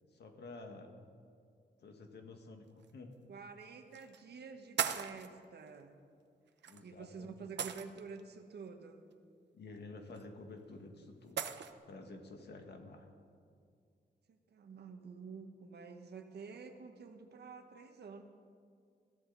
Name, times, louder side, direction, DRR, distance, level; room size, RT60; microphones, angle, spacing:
voice 1, 0.1-0.9 1.8-3.1 6.7-7.5 9.5-11.5 11.9-13.1, left 3 dB, 75° left, 4 dB, 1.9 m, -51 dB
sound 1, 2.8-2.9 3.9-4.2 4.8-5.3 6.6-6.8 7.6-8.2 10.2-10.3 11.4-11.7, right 8 dB, 90° right, 0.8 m, -37 dB
voice 2, 3.3-6.0 6.8-9.0 14.3-18.2, right 5 dB, 70° right, 6 dB, 1.4 m, -49 dB
22.0 x 15.0 x 4.1 m, 2.3 s
wide cardioid pair, 180°, 18 cm